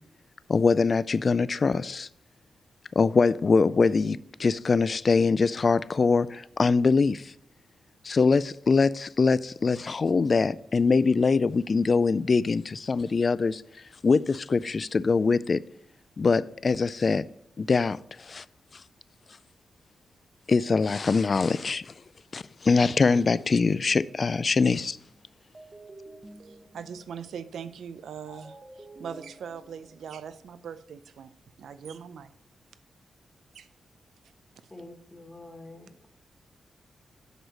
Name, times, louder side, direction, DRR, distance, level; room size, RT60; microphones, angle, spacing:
voice 1, 0.5-2.1 3.0-7.3 8.0-13.6 14.0-15.6 16.2-17.2 17.6-18.4 20.5-21.9 22.3-25.0, left 4 dB, 40° left, 0.3 m, -23 dB
sound 1, 22.8-30.5, right 2 dB, 25° right, 0.9 m, -50 dB
voice 2, 26.4-32.3 33.5-33.7, right 7 dB, 80° right, 0.5 m, -41 dB
voice 3, 34.7-36.1, left 2 dB, 20° left, 1.4 m, -46 dB
8.0 x 6.3 x 4.0 m
wide cardioid pair, 115°, 0 cm